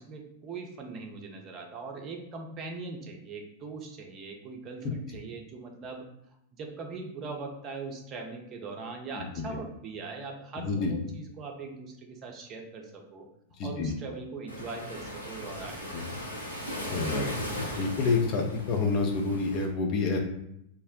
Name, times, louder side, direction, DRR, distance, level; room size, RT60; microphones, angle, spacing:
voice 1, 0.0-6.1 6.5-13.3 13.6-16.1, right 4 dB, 30° right, 2 dB, 0.5 m, -41 dB
voice 2, 10.6-10.9 13.6-13.9 15.9-16.0 16.9-17.3 17.8-20.2, left 4 dB, 40° left, 2 dB, 0.6 m, -28 dB
Waves surf, 14.5-19.7, left 1 dB, 90° left, 0.6 m, -37 dB
2.5 x 2.0 x 3.8 m, 0.78 s
figure-of-eight pair, 90°, 0 cm